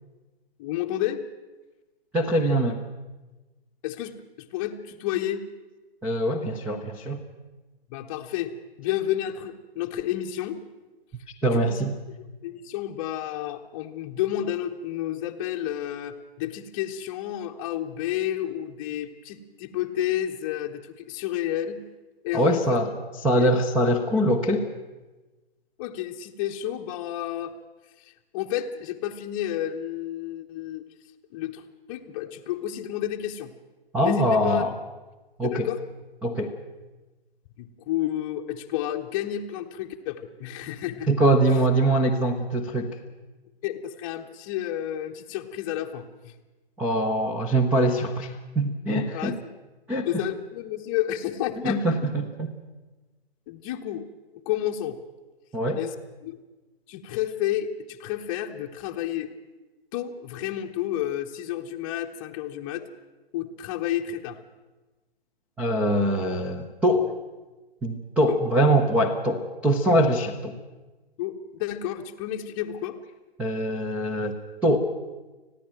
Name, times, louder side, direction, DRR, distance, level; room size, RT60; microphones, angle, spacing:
voice 1, 0.6-1.2 3.8-5.5 7.9-10.6 11.4-11.8 12.4-21.8 22.2-22.8 23.4-23.5 25.8-27.5 28.0-30.8 31.3-33.5 33.9-34.6 35.4-35.8 37.6-41.1 43.6-46.3 49.1-49.5 50.0-51.8 53.5-54.1 54.4-55.0 55.8-55.9 56.2-56.4 56.9-59.3 59.9-62.9 63.3-64.4 68.3-68.4 71.2-73.0, left 12 dB, 20° left, 2 dB, 0.9 m, -31 dB
voice 2, 2.1-2.8 6.0-7.2 11.4-12.0 22.3-23.0 23.2-24.7 33.9-34.7 35.4-35.7 36.2-36.6 41.1-43.0 46.8-49.4 49.9-50.2 51.6-52.5 55.5-55.8 65.6-67.1 67.8-70.6 73.4-74.4 74.6-74.8, right 1 dB, 5° right, 5 dB, 0.7 m, -23 dB
29.5 x 10.5 x 8.9 m, 1.2 s
figure-of-eight pair, 130°, 31 cm